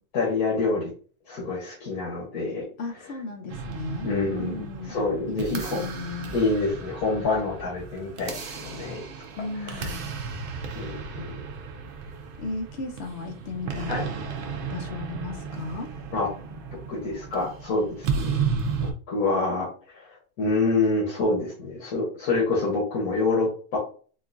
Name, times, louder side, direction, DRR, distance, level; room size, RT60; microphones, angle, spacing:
voice 1, 0.1-0.9 1.3-2.7 3.0-3.1 4.0-5.8 6.3-9.1 9.6-9.9 10.7-11.4 13.9-14.0 16.1-16.3 16.9-18.4 18.7-19.7 19.9-23.8, left 3 dB, 75° left, -4 dB, 1.5 m, -27 dB
voice 2, 2.8-4.1 4.4-4.9 5.3-6.3 9.4-10.1 12.4-14.0 14.6-15.9, left 3 dB, 60° left, 4 dB, 0.7 m, -35 dB
sound 1, 3.5-18.9, right 5 dB, 65° right, 0.5 m, -34 dB
3.8 x 2.4 x 2.5 m, 0.41 s
omnidirectional pair, 1.6 m